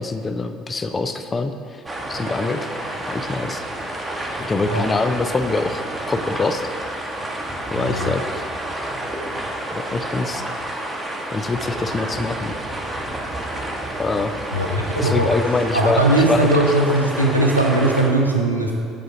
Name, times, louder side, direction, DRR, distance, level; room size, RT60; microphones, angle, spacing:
voice 1, 0.0-1.8 2.1-2.7 3.1-3.6 4.4-6.7 7.7-8.4 9.7-10.4 11.3-12.5 13.0-13.1 14.0-14.3 15.0-16.0 16.3-16.5, left 3 dB, 25° left, 9 dB, 0.4 m, -24 dB
sound 1, 1.8-18.1, right 1 dB, 15° right, 0.9 m, -29 dB
voice 2, 7.7-8.1 14.5-15.3 15.7-18.7, right 1 dB, 85° right, 0 dB, 0.6 m, -19 dB
5.2 x 5.0 x 5.6 m, 2.4 s
figure-of-eight pair, 60°, 0 cm